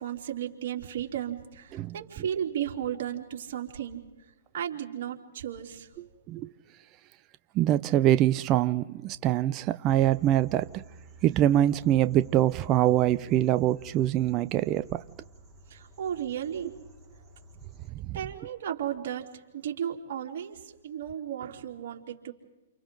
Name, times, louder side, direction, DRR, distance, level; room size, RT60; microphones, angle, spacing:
voice 1, 0.0-4.0 4.5-5.9 15.7-16.7 18.1-19.3 19.5-22.3, right 10 dB, 60° right, 3.7 m, -34 dB
voice 2, 6.0-6.5 7.5-10.8 11.2-15.0 17.9-18.2, right 12 dB, 30° right, 0.6 m, -24 dB
sound 1, 9.9-17.9, right 2 dB, 5° right, 6.8 m, -52 dB
29.5 x 29.0 x 4.0 m
hypercardioid pair, 130°, 0 cm